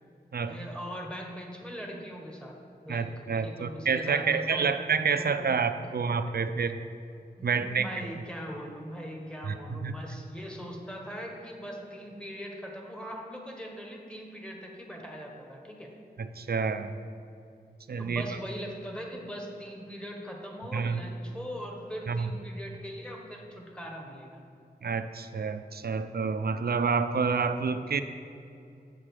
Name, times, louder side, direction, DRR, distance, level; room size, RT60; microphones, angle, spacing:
voice 1, 0.5-2.6 2.8-3.1 3.4-4.7 5.2-5.3 5.8-5.9 7.4-15.9 18.0-24.4, equal, 5° left, 0 dB, 1.3 m, -40 dB
voice 2, 2.9-6.8 7.4-7.9 9.4-10.0 16.2-17.0 17.9-18.2 20.7-21.0 22.1-22.3 24.8-28.0, right 5 dB, 65° right, 10 dB, 0.4 m, -28 dB
7.5 x 7.2 x 4.9 m, 2.6 s
wide cardioid pair, 80°, 17 cm